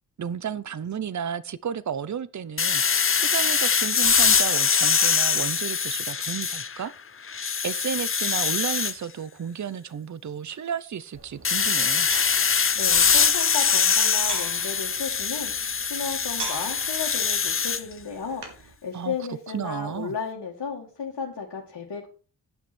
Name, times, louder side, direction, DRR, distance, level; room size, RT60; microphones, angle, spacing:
voice 1, 0.2-6.9 7.2-12.1 18.9-19.2 19.5-20.1, right 8 dB, 45° right, 0.7 m, -33 dB
sound 1, 2.6-6.9 7.3-8.9 11.4-17.8, left 6 dB, 30° left, 0.7 m, -23 dB
sound 2, 11.1-18.7, right 3 dB, 70° right, 3.4 m, -42 dB
voice 2, 12.8-22.1, left 5 dB, 65° left, 2.3 m, -34 dB
10.5 x 6.1 x 6.2 m
cardioid pair, 75°, 42 cm